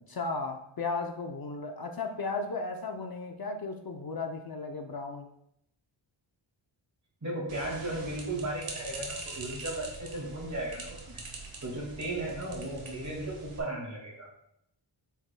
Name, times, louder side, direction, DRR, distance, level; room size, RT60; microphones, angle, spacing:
voice 1, 0.1-5.3, left 3 dB, 50° left, 4 dB, 0.6 m, -35 dB
voice 2, 7.2-11.2 11.6-14.3, right 1 dB, 35° right, -2 dB, 2.1 m, -36 dB
sound 1, 7.5-13.6, right 3 dB, 75° right, 1.7 m, -43 dB
8.4 x 7.1 x 2.2 m, 0.76 s
wide cardioid pair, 135°, 49 cm